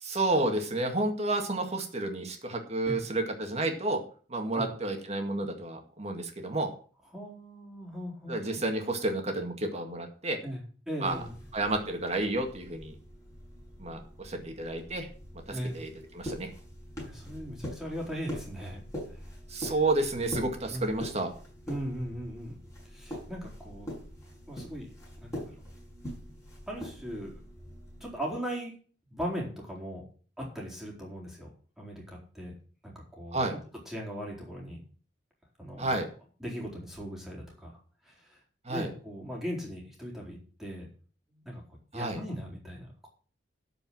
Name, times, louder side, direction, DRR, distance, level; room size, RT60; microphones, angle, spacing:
voice 1, 0.0-4.0 4.3-6.7 8.3-10.4 11.0-11.2 11.5-12.9 13.8-15.1 15.7-15.9 16.1-16.5 19.5-21.3 33.3-33.6 35.8-36.1 38.7-38.9 41.9-42.2, right 2 dB, 35° right, 4 dB, 2.1 m, -30 dB
voice 2, 7.1-8.6 10.4-11.3 14.4-14.5 15.5-15.8 17.0-19.2 20.7-21.0 21.7-22.6 22.9-23.9 24.5-24.9 25.2-25.7 26.7-27.4 28.0-28.7 29.1-30.0 30.4-31.5 31.8-32.5 32.8-33.5 33.9-34.8 35.6-36.0 36.4-37.8 38.0-38.4 38.7-40.9 41.3-41.6 41.9-43.1, equal, 5° right, -4 dB, 4.2 m, -39 dB
sound 1, 11.0-28.1, equal, 15° left, 6.8 m, -44 dB
12.5 x 5.3 x 7.7 m, 0.42 s
head